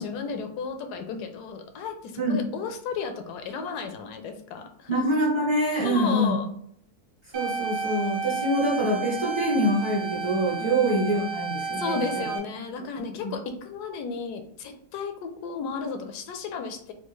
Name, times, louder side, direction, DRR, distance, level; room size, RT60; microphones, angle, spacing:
voice 1, 0.0-5.0 5.8-6.4 10.6-10.9 11.8-16.9, left 5 dB, 80° left, 6 dB, 1.1 m, -33 dB
voice 2, 4.9-6.4 7.3-12.0 13.2-13.3, right 1 dB, 30° right, -4 dB, 0.5 m, -25 dB
sound 1, 7.3-12.4, right 5 dB, 70° right, 1.0 m, -32 dB
3.5 x 2.3 x 3.0 m, 0.67 s
omnidirectional pair, 1.7 m